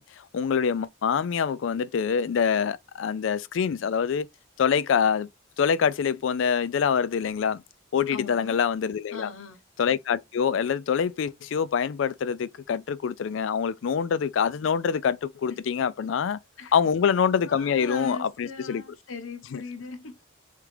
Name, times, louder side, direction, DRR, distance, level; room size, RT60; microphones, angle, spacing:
voice 1, 0.0-4.3 4.6-5.3 5.6-7.6 7.9-9.3 9.8-16.4 16.7-18.8 19.5-19.6, left 7 dB, 70° left, 0.3 m, -25 dB
voice 2, 8.1-8.6 9.1-9.6 15.5-15.6 16.6-16.7 17.4-20.2, left 4 dB, 85° left, 0.8 m, -39 dB
3.6 x 3.4 x 3.3 m
head